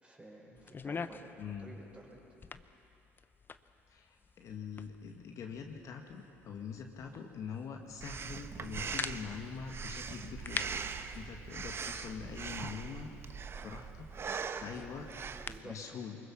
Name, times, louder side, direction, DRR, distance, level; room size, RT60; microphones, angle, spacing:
voice 1, 0.0-2.2 11.1-11.4 13.5-13.8 14.7-14.8 15.5-15.7, right 1 dB, 15° right, -1 dB, 5.6 m, -53 dB
sound 1, 0.5-15.8, left 5 dB, 30° left, 0.8 m, -47 dB
voice 2, 1.4-1.8 3.9-10.8 11.1-13.1 13.6-14.1 14.6-15.1 15.6-16.2, left 6 dB, 50° left, 3 dB, 1.8 m, -44 dB
Breathing, 8.0-15.6, right 5 dB, 35° right, 1.0 m, -41 dB
24.5 x 21.5 x 5.9 m, 2.9 s
hypercardioid pair, 60°, 7 cm